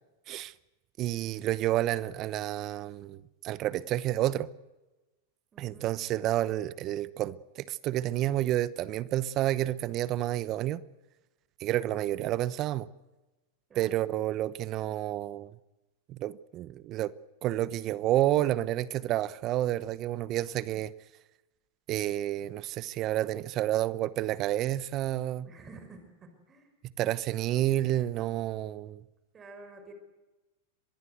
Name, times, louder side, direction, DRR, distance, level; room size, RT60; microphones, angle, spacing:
voice 1, 1.0-4.5 5.6-10.8 11.6-12.9 13.8-15.5 16.1-17.1 17.4-20.9 21.9-25.5 27.0-29.0, right 14 dB, 40° right, 0.9 m, -30 dB
voice 2, 5.5-5.9 13.7-14.0 25.4-26.7 29.3-29.9, right 3 dB, 25° right, 5.7 m, -50 dB
25.0 x 20.5 x 8.1 m
hypercardioid pair, 105°, 0 cm